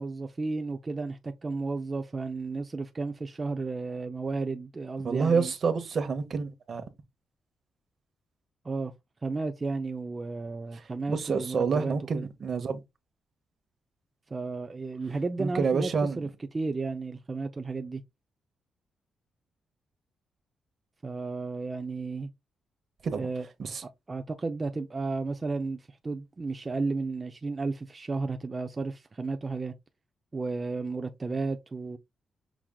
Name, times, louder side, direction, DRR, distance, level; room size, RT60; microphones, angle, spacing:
voice 1, 0.0-5.5 8.6-8.9 9.2-12.3 14.3-16.3 16.5-18.0 21.0-22.3 23.2-23.5 24.1-29.7 30.3-32.0, right 3 dB, 30° right, 0.5 m, -33 dB
voice 2, 5.0-6.8 11.1-12.8 15.4-16.2 23.0-23.3 23.6-23.8, right 5 dB, 55° right, 0.9 m, -28 dB
6.0 x 3.6 x 2.3 m
cardioid pair, 100°, 0 cm